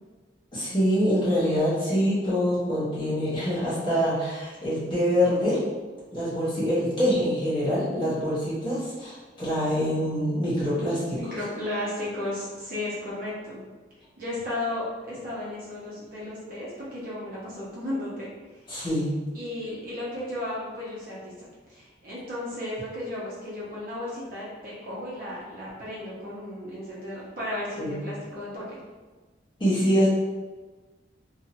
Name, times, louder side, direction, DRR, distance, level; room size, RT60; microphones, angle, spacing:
voice 1, 0.5-5.6 6.1-11.2 18.7-19.1 27.8-28.0 29.6-30.1, equal, 30° left, -10 dB, 1.3 m, -25 dB
voice 2, 11.2-13.6 14.2-18.3 19.3-21.3 21.7-28.8, left 1 dB, 50° right, -7 dB, 0.9 m, -34 dB
2.8 x 2.4 x 2.8 m, 1.3 s
head